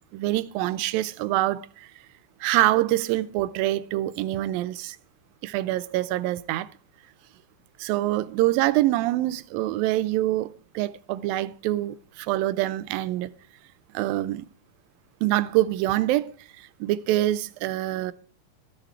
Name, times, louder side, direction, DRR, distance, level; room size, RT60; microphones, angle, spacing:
voice 1, 0.1-1.9 2.4-5.0 5.4-6.7 7.8-13.3 13.9-14.5 15.2-18.1, right 15 dB, 85° right, 2.4 m, -25 dB
13.5 x 9.1 x 4.4 m
omnidirectional pair, 4.0 m